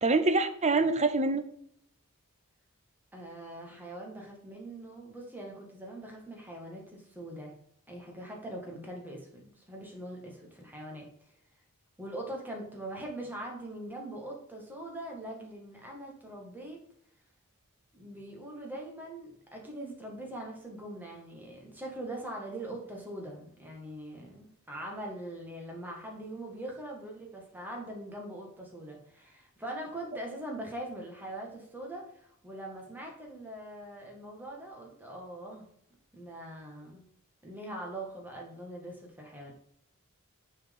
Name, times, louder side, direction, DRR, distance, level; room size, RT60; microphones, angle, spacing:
voice 1, 0.0-1.4, right 3 dB, 30° right, 10 dB, 0.7 m, -25 dB
voice 2, 3.1-7.5 7.9-11.1 12.0-16.8 17.9-35.7 36.1-37.1 37.4-39.5, right 1 dB, 10° right, -1 dB, 1.9 m, -42 dB
7.0 x 4.6 x 5.4 m, 0.67 s
head